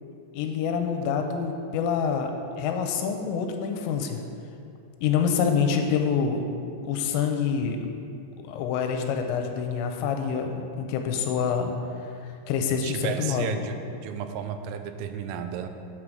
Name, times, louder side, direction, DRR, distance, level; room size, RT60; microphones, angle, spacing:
voice 1, 0.3-2.3 2.6-4.2 5.0-6.4 6.8-7.8 8.4-11.7 12.2-13.4, left 6 dB, 85° left, 4 dB, 3.2 m, -26 dB
voice 2, 12.8-13.8 14.0-15.7, right 8 dB, 85° right, 8 dB, 3.3 m, -33 dB
8.8 x 4.9 x 6.1 m, 2.5 s
omnidirectional pair, 5.9 m